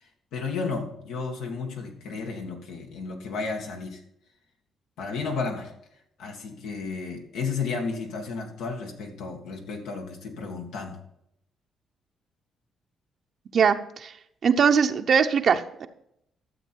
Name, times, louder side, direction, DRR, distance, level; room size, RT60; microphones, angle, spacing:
voice 1, 0.0-4.0 5.0-5.7 6.2-11.0, left 4 dB, 90° left, 2 dB, 1.9 m, -33 dB
voice 2, 13.5-14.1 14.4-15.9, right 6 dB, 55° right, 6 dB, 0.7 m, -21 dB
13.0 x 7.3 x 4.6 m, 0.76 s
cardioid pair, 90°, 0 cm